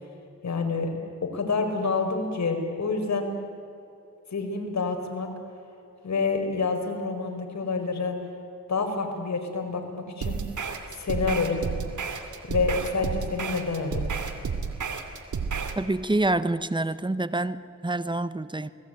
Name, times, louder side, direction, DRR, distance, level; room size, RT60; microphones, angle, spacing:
voice 1, 0.4-0.9 1.2-3.3 4.3-5.3 6.0-8.2 8.7-10.4 11.0-11.7 12.5-14.0, left 4 dB, 60° left, 4 dB, 5.1 m, -28 dB
sound 1, 10.2-15.8, right 5 dB, 70° right, 2.6 m, -31 dB
voice 2, 15.8-18.7, right 2 dB, 15° right, 14 dB, 1.1 m, -27 dB
28.5 x 20.0 x 9.3 m, 2.6 s
cardioid pair, 70°, 31 cm